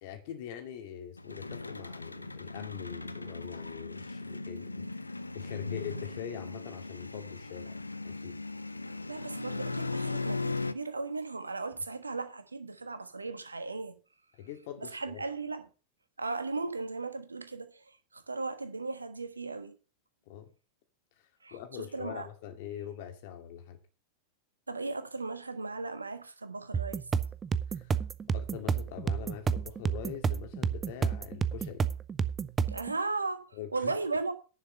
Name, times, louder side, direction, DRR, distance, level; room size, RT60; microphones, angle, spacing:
voice 1, 0.0-5.0 5.3-7.8 8.0-8.4 14.4-15.2 20.3-20.5 21.5-23.8 27.7-28.0 28.3-31.9 33.5-33.9, left 10 dB, 50° left, 2.5 m, -43 dB
sound 1, 1.2-10.7, left 3 dB, 80° left, 0.6 m, -38 dB
voice 2, 9.1-14.0 14.8-15.6 16.2-19.7 21.4-22.3 24.7-27.0 32.7-34.3, right 3 dB, 80° right, 1.4 m, -36 dB
sound 2, 26.7-32.9, right 6 dB, 20° right, 0.6 m, -30 dB
10.5 x 6.4 x 6.7 m
figure-of-eight pair, 90°, 0 cm